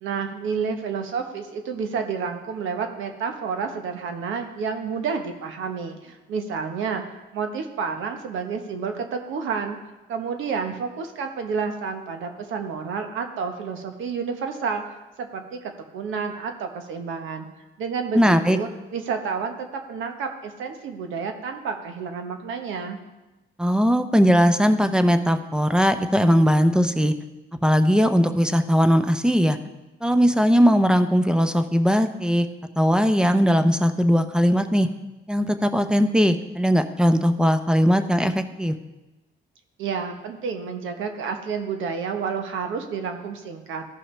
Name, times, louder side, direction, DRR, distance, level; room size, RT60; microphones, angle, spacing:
voice 1, 0.0-9.8 10.1-14.8 15.2-17.5 17.8-23.0 39.8-43.9, right 5 dB, 80° right, 5 dB, 1.1 m, -30 dB
voice 2, 18.1-18.6 23.6-27.1 27.6-29.6 30.0-32.5 32.8-34.9 35.3-38.8, equal, 5° right, 9 dB, 0.6 m, -19 dB
15.0 x 5.6 x 3.3 m, 1.1 s
cardioid pair, 90°, 20 cm